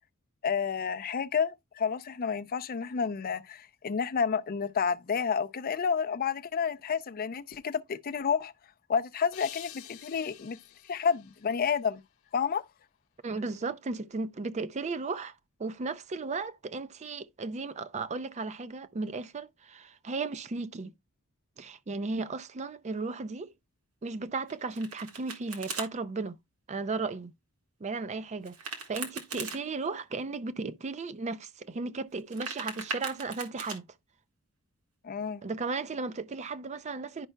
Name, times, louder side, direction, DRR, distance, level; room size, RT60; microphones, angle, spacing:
voice 1, 0.4-8.5 8.9-10.6 10.9-12.0 12.3-12.6 35.0-35.4, left 6 dB, 40° left, 0.4 m, -30 dB
sound 1, 9.3-12.5, left 12 dB, 70° left, 0.8 m, -49 dB
voice 2, 13.2-15.3 15.6-20.9 21.6-23.5 24.0-26.4 26.7-27.3 27.8-33.9 35.4-37.3, right 3 dB, 30° right, 0.4 m, -35 dB
Domestic sounds home sounds, 24.5-25.9 28.4-29.6 32.1-33.8, right 4 dB, 85° right, 1.8 m, -39 dB
10.5 x 5.4 x 2.2 m
head